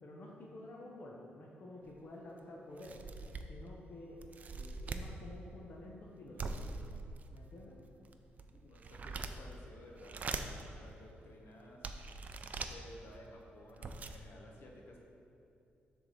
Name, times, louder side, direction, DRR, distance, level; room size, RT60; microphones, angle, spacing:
voice 1, 0.0-3.0 3.5-4.2 4.5-6.7 7.3-7.8, left 1 dB, 50° left, -3 dB, 1.0 m, -50 dB
sound 1, 1.9-2.0 2.4-2.5 2.8-3.7 4.2-5.1 6.4-7.5 8.0-9.6 10.0-10.6 11.2-11.3 11.8-12.7 13.4-13.5 13.7-14.2, right 4 dB, 40° right, 0.4 m, -42 dB
voice 2, 8.4-12.0 12.6-15.0, left 1 dB, 70° left, -1 dB, 1.1 m, -55 dB
7.2 x 3.6 x 6.3 m, 2.8 s
cardioid pair, 115°, 4 cm